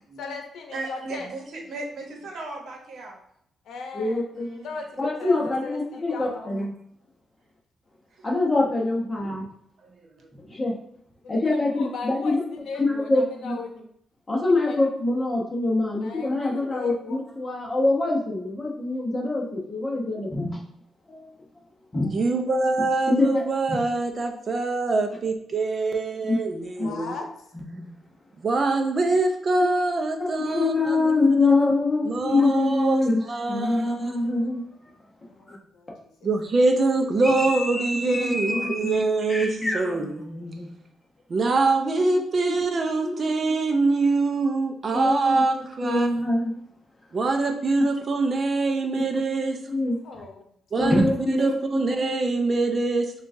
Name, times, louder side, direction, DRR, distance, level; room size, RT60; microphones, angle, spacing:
voice 1, 0.2-1.3 3.6-4.3 4.6-6.7 11.2-13.9 14.6-14.8 16.0-17.2 26.7-27.3 35.3-36.3 50.0-50.5, left 4 dB, 85° left, 3 dB, 0.7 m, -38 dB
voice 2, 0.7-3.2 4.3-4.8 8.1-8.3 9.8-10.3, right 2 dB, 65° right, 1 dB, 1.0 m, -37 dB
voice 3, 3.9-4.6 5.0-6.7 8.2-9.5 10.4-10.8 11.3-12.4 12.8-13.6 14.3-20.6 21.1-21.3 21.9-22.2 23.1-23.4 26.3-26.4 26.8-26.9 27.7-28.0 30.2-33.2 33.5-34.7 35.5-35.6 37.2-39.0 39.3-40.7 42.5-42.7 43.0-43.1 44.9-46.6 48.9-49.0 49.7-50.0 50.8-51.8, left 2 dB, 20° left, -2 dB, 1.0 m, -25 dB
voice 4, 22.1-27.2 28.4-31.1 32.1-33.0 33.3-34.2 36.2-40.2 40.5-40.8 41.3-46.1 47.1-49.6 50.7-51.0 51.3-53.1, right 3 dB, 40° right, 4 dB, 0.6 m, -24 dB
6.8 x 2.4 x 2.7 m, 0.70 s
cardioid pair, 130°, 0 cm